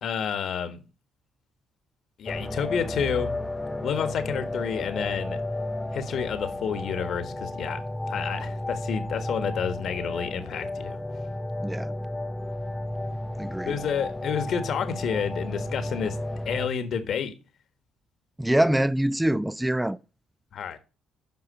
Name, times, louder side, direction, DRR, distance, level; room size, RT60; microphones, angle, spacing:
voice 1, 0.0-0.8 2.2-3.3 3.8-5.4 5.9-7.8 8.1-11.0 13.6-16.2 16.4-17.3 20.5-20.8, left 7 dB, 65° left, 1.6 m, -29 dB
sound 1, 2.3-16.7, left 1 dB, 15° left, 0.9 m, -33 dB
voice 2, 11.6-11.9 13.4-13.8 18.4-20.0, right 1 dB, 10° right, 0.5 m, -24 dB
8.3 x 5.7 x 6.4 m
supercardioid pair, 60°, 0 cm